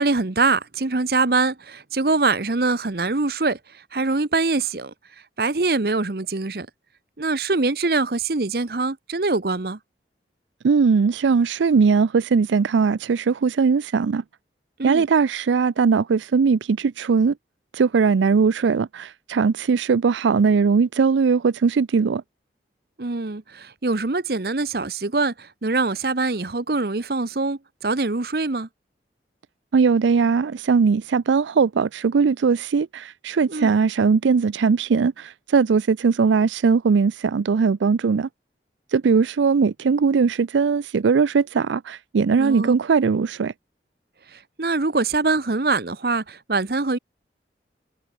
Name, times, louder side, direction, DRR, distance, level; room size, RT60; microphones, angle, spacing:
voice 1, 0.0-3.6 3.9-4.9 5.4-6.7 7.2-9.8 14.8-15.0 23.0-28.7 33.5-33.7 42.4-42.7 44.6-47.0, right 3 dB, 55° right, 0.9 m, -23 dB
voice 2, 10.6-14.2 14.8-17.3 17.7-22.2 29.7-38.3 38.9-43.5, right 5 dB, 90° right, 0.4 m, -19 dB
head